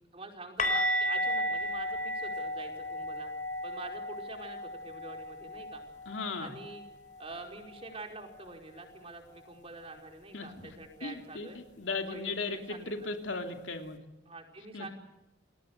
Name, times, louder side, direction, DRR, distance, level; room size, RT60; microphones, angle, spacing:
voice 1, 0.1-3.3 3.6-5.8 6.4-6.8 7.2-11.6 12.0-13.1 14.3-14.9, right 2 dB, 30° right, 3 dB, 5.0 m, -46 dB
sound 1, 0.6-6.4 6.6-6.9 7.2-7.4 10.6-10.7, equal, 40° left, 3.9 m, -34 dB
voice 2, 6.1-6.5 10.3-10.7 11.0-14.0 14.7-14.9, left 3 dB, 75° left, 4 dB, 3.0 m, -37 dB
30.0 x 21.5 x 6.7 m, 0.93 s
head